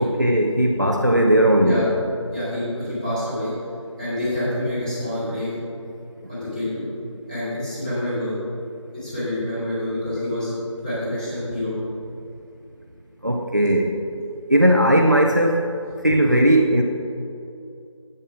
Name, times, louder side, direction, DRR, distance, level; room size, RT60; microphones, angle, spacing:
voice 1, 0.0-1.9 13.2-13.9 14.5-15.7 16.0-16.8, right 1 dB, 35° right, 1 dB, 0.5 m, -17 dB
voice 2, 2.3-3.5 4.0-5.6 6.3-6.8 7.3-8.3 8.9-10.5 10.8-11.7, left 1 dB, 15° left, -11 dB, 2.4 m, -27 dB
8.6 x 7.6 x 4.8 m, 2.6 s
figure-of-eight pair, 170°, 16 cm